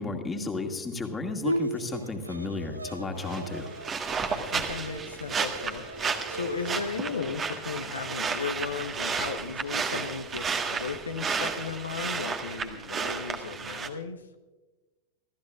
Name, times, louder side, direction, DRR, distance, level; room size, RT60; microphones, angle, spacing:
voice 1, 0.0-3.7, left 3 dB, 15° left, 3 dB, 2.1 m, -33 dB
Bowed string instrument, 1.4-6.9, right 1 dB, 80° right, 0.7 m, -37 dB
sound 1, 3.2-13.9, right 5 dB, 25° right, 1.5 m, -32 dB
voice 2, 4.3-5.9 6.3-14.3, left 5 dB, 75° left, 7 dB, 0.9 m, -35 dB
29.0 x 14.0 x 2.5 m, 1.2 s
figure-of-eight pair, 90°, 0 cm